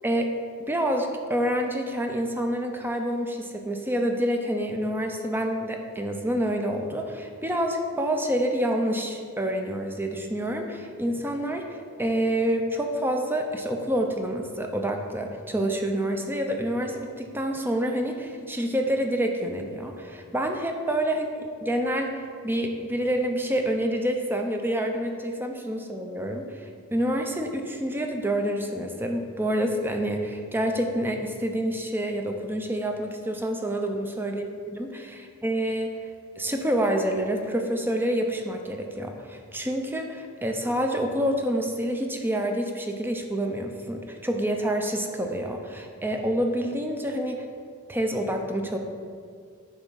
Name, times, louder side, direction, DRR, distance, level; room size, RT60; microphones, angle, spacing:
voice 1, 0.7-34.5 34.7-36.0 36.4-47.5 47.9-48.8, right 1 dB, 10° right, 3 dB, 0.6 m, -27 dB
9.3 x 3.6 x 6.9 m, 2.1 s
head